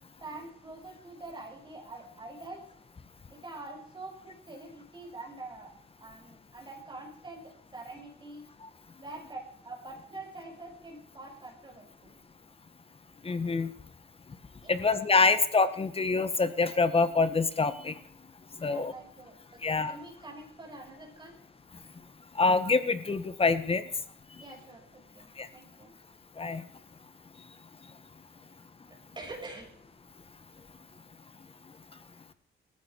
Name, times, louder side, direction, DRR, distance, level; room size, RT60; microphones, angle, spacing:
voice 1, 0.2-2.7 3.3-5.7 6.0-8.5 9.0-12.2 14.6-15.3 18.6-21.4 24.4-26.0 29.2-29.8, right 2 dB, 25° right, -1 dB, 5.9 m, -45 dB
voice 2, 13.2-13.7 14.7-17.9 18.6-18.9 19.6-19.9 22.3-23.8 25.4-25.5 26.4-26.6, left 4 dB, 30° left, 12 dB, 1.7 m, -25 dB
19.0 x 15.0 x 4.8 m, 0.63 s
cardioid pair, 90°, 20 cm